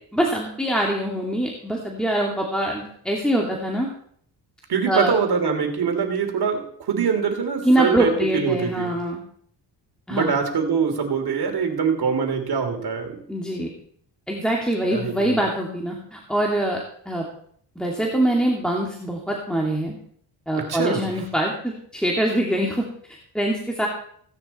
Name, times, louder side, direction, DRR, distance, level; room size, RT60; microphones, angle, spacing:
voice 1, 0.1-3.9 4.9-5.1 7.6-9.2 10.1-10.4 13.3-13.7 14.3-16.8 17.1-17.2 17.8-20.0 20.5-22.9 23.3-23.9, right 1 dB, ahead, -1 dB, 2.4 m, -23 dB
voice 2, 4.7-8.9 10.1-13.1 14.9-15.4 20.6-21.1, right 6 dB, 55° right, 4 dB, 3.2 m, -24 dB
17.0 x 9.5 x 4.3 m, 0.62 s
cardioid pair, 80°, 44 cm